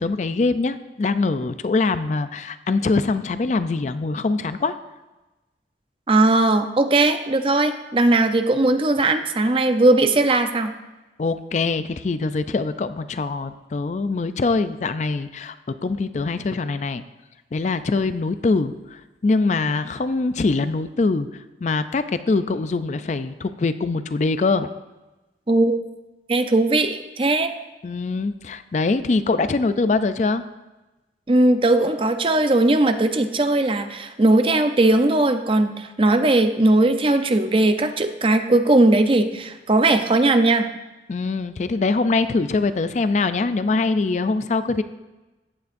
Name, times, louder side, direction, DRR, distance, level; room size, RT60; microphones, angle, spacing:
voice 1, 0.0-4.7 11.2-15.5 15.8-17.0 17.5-21.3 21.6-24.7 27.8-30.4 41.1-44.8, left 3 dB, 40° left, 12 dB, 0.4 m, -23 dB
voice 2, 6.1-10.7 25.5-25.8 26.3-27.5 31.3-40.7, right 2 dB, 30° right, 8 dB, 0.6 m, -18 dB
15.0 x 9.3 x 2.6 m, 1.1 s
head